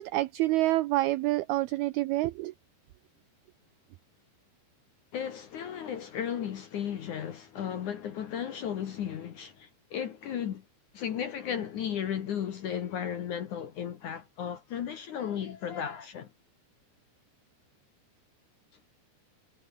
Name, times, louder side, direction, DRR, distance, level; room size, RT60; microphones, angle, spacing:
voice 1, 0.0-2.5, right 17 dB, 85° right, 2.2 m, -27 dB
voice 2, 5.1-10.6 10.9-16.3, left 9 dB, 60° left, 2.2 m, -35 dB
omnidirectional pair, 5.3 m